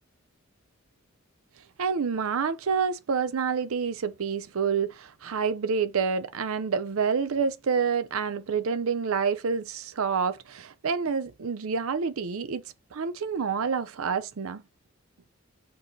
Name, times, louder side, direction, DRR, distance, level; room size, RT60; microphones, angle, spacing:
voice 1, 1.8-12.6 12.9-14.6, right 6 dB, 70° right, 0.5 m, -28 dB
4.7 x 2.8 x 3.8 m
head